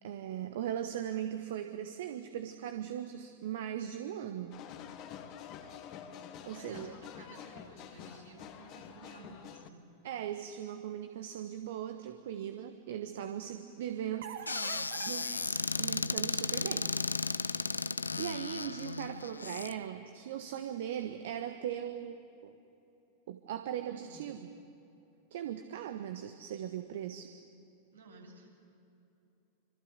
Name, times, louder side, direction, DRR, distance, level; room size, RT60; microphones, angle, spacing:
voice 1, 0.0-4.6 6.5-6.9 10.0-16.9 18.2-22.2 22.4-22.6 23.3-24.5 25.3-27.3, right 10 dB, 55° right, 8 dB, 1.3 m, -39 dB
sound 1, 4.5-9.7, left 9 dB, 40° left, 1.9 m, -48 dB
voice 2, 5.9-6.3 6.5-9.8 23.9-24.2 27.9-28.5, right 3 dB, 75° right, -2 dB, 8.0 m, -54 dB
Squeak / Cupboard open or close, 14.5-19.7, left 4 dB, 80° left, 0.6 m, -34 dB
26.5 x 26.0 x 8.3 m, 2.9 s
figure-of-eight pair, 90°, 0 cm